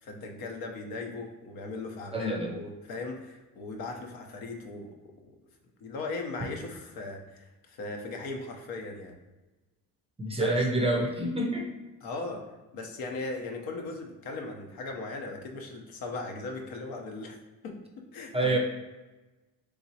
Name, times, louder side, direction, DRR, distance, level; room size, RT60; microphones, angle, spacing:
voice 1, 0.0-4.9 5.2-5.3 5.8-9.2 10.4-10.7 12.0-12.5 12.7-17.3 17.6-18.6, left 3 dB, 80° left, 2 dB, 0.9 m, -38 dB
voice 2, 2.1-2.5 10.2-11.7 18.3-18.6, right 2 dB, 15° right, 2 dB, 0.4 m, -27 dB
4.0 x 3.6 x 2.8 m, 1.1 s
cardioid pair, 165°, 35 cm